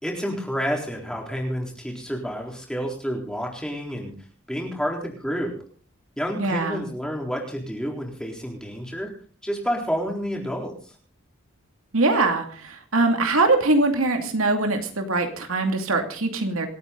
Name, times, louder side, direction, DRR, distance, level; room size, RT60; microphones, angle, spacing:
voice 1, 0.0-4.1 4.5-5.5 6.2-9.1 9.4-10.9, equal, 5° left, 0 dB, 3.9 m, -29 dB
voice 2, 6.4-6.8 11.9-16.7, right 2 dB, 80° right, 4 dB, 2.5 m, -22 dB
27.5 x 9.3 x 3.9 m, 0.44 s
head